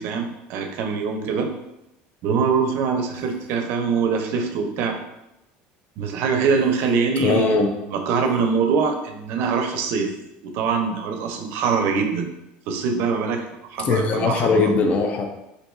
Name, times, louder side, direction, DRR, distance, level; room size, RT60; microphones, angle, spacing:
voice 1, 0.0-1.5 2.2-5.0 6.0-7.6 7.9-10.1 10.4-12.3 12.7-14.7, right 5 dB, 60° right, 4 dB, 0.5 m, -23 dB
voice 2, 7.2-7.7 13.8-15.2, left 4 dB, 35° left, 4 dB, 0.4 m, -20 dB
2.6 x 2.3 x 4.1 m, 0.89 s
cardioid pair, 140°, 4 cm